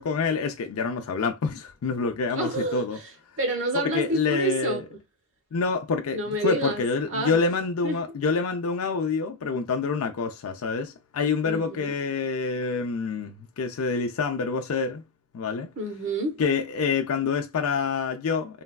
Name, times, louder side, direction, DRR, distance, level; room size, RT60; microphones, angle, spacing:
voice 1, 0.0-3.0 3.8-4.8 5.5-15.0 15.3-15.7 16.4-18.6, left 5 dB, 70° left, 0.4 m, -27 dB
voice 2, 2.3-3.1 3.4-5.0 6.1-7.4 7.8-8.2 11.4-12.0 15.8-16.4, right 1 dB, 60° right, 0.9 m, -29 dB
3.2 x 2.3 x 2.2 m
head